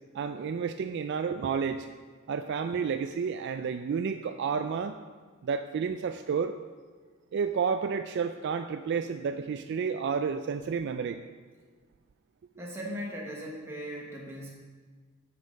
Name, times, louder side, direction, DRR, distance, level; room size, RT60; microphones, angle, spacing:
voice 1, 0.1-1.9 2.3-4.9 5.4-6.5 7.3-11.2, right 6 dB, 55° right, 8 dB, 0.3 m, -31 dB
voice 2, 12.6-14.5, equal, 10° right, -4 dB, 1.1 m, -38 dB
8.3 x 6.4 x 5.1 m, 1.5 s
head